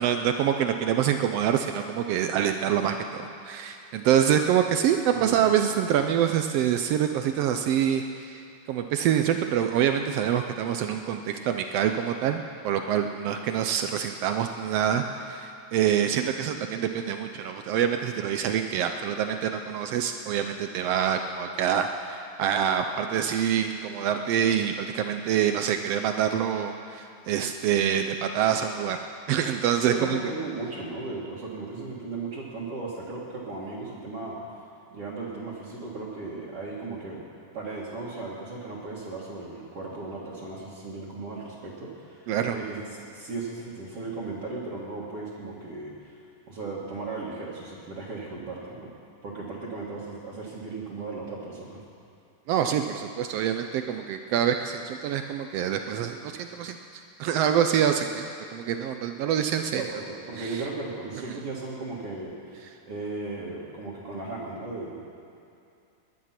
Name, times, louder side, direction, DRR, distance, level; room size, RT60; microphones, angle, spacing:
voice 1, 0.0-8.4 8.7-29.0 29.3-30.2 42.3-42.6 52.5-59.8 60.4-60.6 61.3-61.4, right 9 dB, 90° right, 6 dB, 1.3 m, -26 dB
voice 2, 5.1-5.6 29.9-34.4 34.9-37.3 37.5-42.8 43.1-46.2 46.5-48.9 49.2-51.8 59.7-65.0, right 3 dB, 50° right, -7 dB, 2.6 m, -36 dB
20.5 x 11.0 x 5.9 m, 2.6 s
omnidirectional pair, 3.5 m